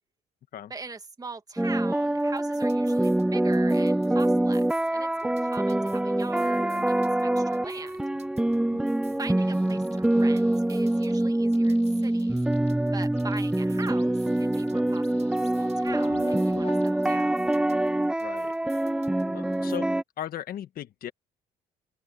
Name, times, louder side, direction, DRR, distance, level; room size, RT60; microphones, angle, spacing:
voice 1, 0.7-8.1 9.2-17.4, right 3 dB, 20° right, 2.1 m, -42 dB
sound 1, 1.6-20.0, right 1 dB, 5° right, 0.4 m, -25 dB
sound 2, 2.2-3.2 3.5-4.9 5.2-8.6 8.9-11.2 11.5-13.9 14.2-16.6 16.9-19.2 19.5-19.8, right 7 dB, 40° right, 6.0 m, -56 dB
sound 3, 9.4-11.2 11.5-12.7 13.2-17.0, left 7 dB, 40° left, 5.4 m, -45 dB
voice 2, 18.2-18.5 19.3-19.9 20.2-21.1, left 11 dB, 60° left, 1.5 m, -37 dB
open air
cardioid pair, 110°, 17 cm